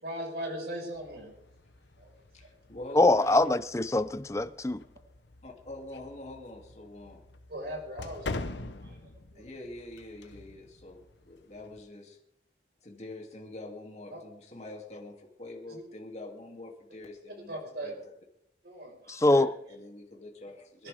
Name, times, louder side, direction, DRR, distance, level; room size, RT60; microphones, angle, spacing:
voice 1, 0.0-1.3 2.0-2.1 2.4-2.5 7.5-8.4 8.8-9.5 14.1-14.2 15.7-15.8 17.5-17.9 18.6-19.5, right 1 dB, 60° right, 5.1 m, -39 dB
sound 1, 0.9-11.8, left 2 dB, 75° left, 1.0 m, -45 dB
voice 2, 2.3-3.4 5.4-7.2 9.3-12.2 12.8-17.6 17.8-18.1 19.7-20.9, left 2 dB, 35° left, 2.7 m, -45 dB
voice 3, 2.9-4.8 19.1-19.6, left 2 dB, 15° left, 0.5 m, -23 dB
26.0 x 11.0 x 3.6 m
head